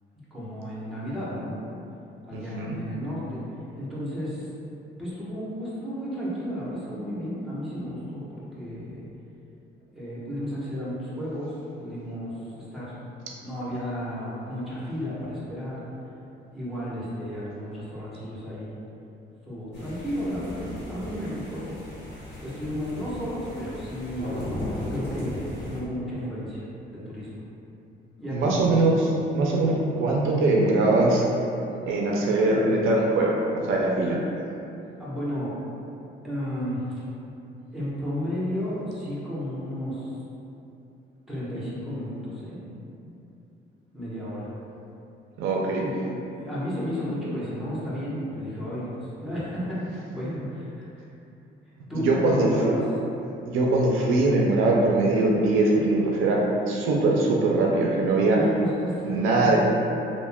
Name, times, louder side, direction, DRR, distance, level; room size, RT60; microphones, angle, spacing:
voice 1, 0.3-1.6 2.3-3.4 3.7-4.5 5.0-9.1 9.9-11.5 11.8-12.9 13.4-15.8 16.5-18.7 19.4-21.8 22.4-24.3 24.9-26.6 26.9-27.4 28.2-28.6 35.0-35.6 36.2-36.8 37.7-40.1 41.3-42.6 43.0-43.1 43.9-44.5 45.7-45.9 46.4-51.0 51.9-52.8 58.3-58.9 59.4-59.6, equal, ahead, -9 dB, 1.0 m, -33 dB
voice 2, 2.3-2.8 28.3-31.2 31.9-34.2 45.4-45.8 52.0-52.7 53.5-58.4 59.0-59.6, right 2 dB, 85° right, -2 dB, 0.4 m, -22 dB
sound 1, 19.7-25.8, left 1 dB, 65° left, 1.0 m, -36 dB
3.4 x 2.1 x 2.2 m, 2.8 s
cardioid pair, 90°, 20 cm